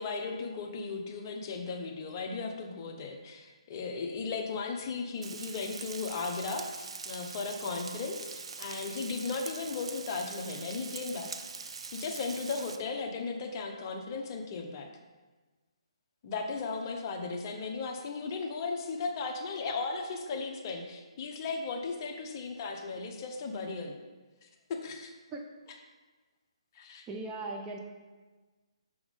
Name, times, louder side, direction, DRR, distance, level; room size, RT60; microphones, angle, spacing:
voice 1, 0.0-11.3 11.9-14.9 16.2-23.9 24.4-25.1 25.7-25.8 26.7-27.0, left 4 dB, 35° left, 3 dB, 0.7 m, -36 dB
Frying (food), 5.2-12.8, right 5 dB, 65° right, 0.5 m, -43 dB
voice 2, 27.1-27.8, right 3 dB, 15° right, 1 dB, 0.5 m, -38 dB
6.1 x 3.6 x 5.1 m, 1.3 s
hypercardioid pair, 150°, 3 cm